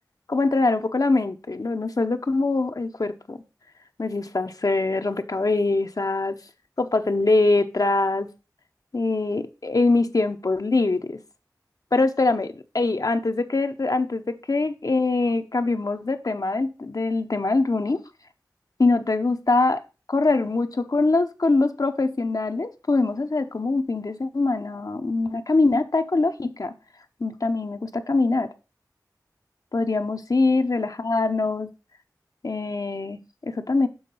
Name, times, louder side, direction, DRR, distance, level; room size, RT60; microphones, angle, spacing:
voice 1, 0.3-3.4 4.0-6.3 6.8-8.3 8.9-11.2 11.9-18.0 18.8-19.8 20.1-26.7 27.2-28.5 29.7-31.7 32.4-33.9, left 3 dB, 60° left, 8 dB, 0.6 m, -23 dB
7.1 x 3.8 x 5.3 m, 0.31 s
wide cardioid pair, 55°, 7 cm